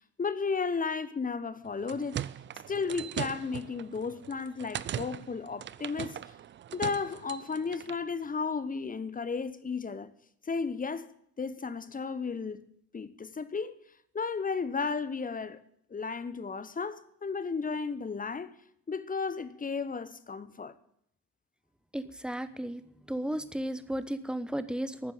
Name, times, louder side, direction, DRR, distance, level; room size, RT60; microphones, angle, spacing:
voice 1, 0.2-2.2 2.7-6.2 6.7-10.1 10.5-11.1 11.4-12.6 12.9-13.7 14.1-15.6 15.9-18.5 18.9-20.7, left 5 dB, 20° left, 1.0 m, -34 dB
sound 1, 1.6-8.0, right 10 dB, 30° right, 0.5 m, -40 dB
voice 2, 21.9-22.8 23.1-25.1, right 1 dB, ahead, 1.0 m, -34 dB
12.5 x 9.4 x 8.9 m
figure-of-eight pair, 40°, 39 cm